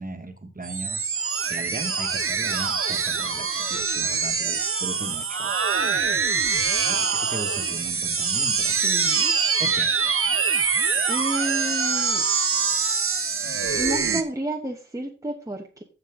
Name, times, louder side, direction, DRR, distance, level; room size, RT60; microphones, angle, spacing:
voice 1, 0.0-5.8 6.9-8.8 9.6-9.9, right 2 dB, 30° right, 5 dB, 1.8 m, -37 dB
sound 1, 0.6-14.2, right 5 dB, 45° right, 1.1 m, -24 dB
voice 2, 8.8-9.3 11.1-12.3 13.7-15.8, right 1 dB, 10° right, 1 dB, 1.2 m, -30 dB
15.0 x 5.3 x 3.8 m, 0.37 s
wide cardioid pair, 85°, 30 cm